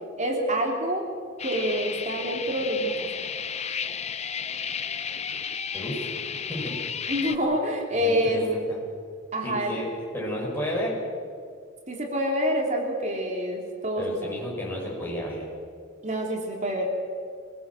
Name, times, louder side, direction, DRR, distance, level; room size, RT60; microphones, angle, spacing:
voice 1, 0.2-1.0 1.4-2.9 7.1-8.5 9.3-9.8 11.9-14.3 16.0-16.9, equal, 35° right, 1 dB, 3.3 m, -27 dB
sound 1, 1.4-7.4, left 7 dB, 35° left, 0.7 m, -33 dB
voice 2, 5.7-6.1 6.5-6.8 8.0-8.8 9.4-9.8 10.1-11.0 14.0-15.5, equal, 10° left, -4 dB, 7.3 m, -32 dB
25.0 x 17.0 x 7.7 m, 2.1 s
head